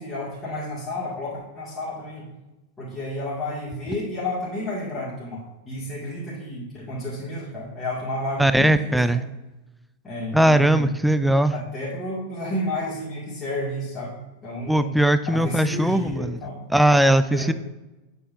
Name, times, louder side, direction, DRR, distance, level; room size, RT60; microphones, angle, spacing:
voice 1, 0.0-2.3 2.8-9.2 10.0-10.9 11.5-14.1 14.4-14.9 15.3-16.6 17.3-17.5, left 1 dB, 15° left, -8 dB, 1.9 m, -31 dB
voice 2, 8.4-9.2 10.3-11.5 14.7-16.4 16.7-17.5, right 1 dB, ahead, 12 dB, 0.3 m, -19 dB
8.4 x 5.5 x 2.5 m, 1.0 s
figure-of-eight pair, 90°, 0 cm